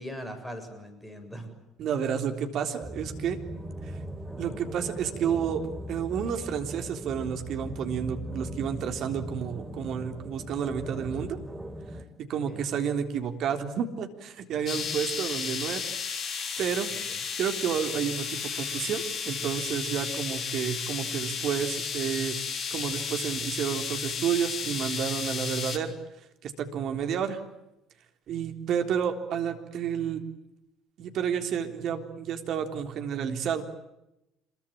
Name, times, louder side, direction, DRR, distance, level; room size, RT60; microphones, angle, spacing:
voice 1, 0.0-1.5 12.5-12.6 14.7-15.0 16.9-17.2, equal, 5° left, 8 dB, 7.7 m, -41 dB
voice 2, 1.8-3.4 3.8-4.0 4.4-11.4 12.2-15.9 16.6-16.9 17.4-22.4 22.7-25.9 26.4-27.4 28.3-30.2 31.0-33.6, right 8 dB, 55° right, 6 dB, 3.7 m, -30 dB
sound 1, 2.8-12.0, equal, 15° right, 3.5 m, -39 dB
sound 2, 14.7-25.8, left 6 dB, 45° left, 3.6 m, -33 dB
27.5 x 22.5 x 8.9 m, 0.89 s
hypercardioid pair, 55°, 0 cm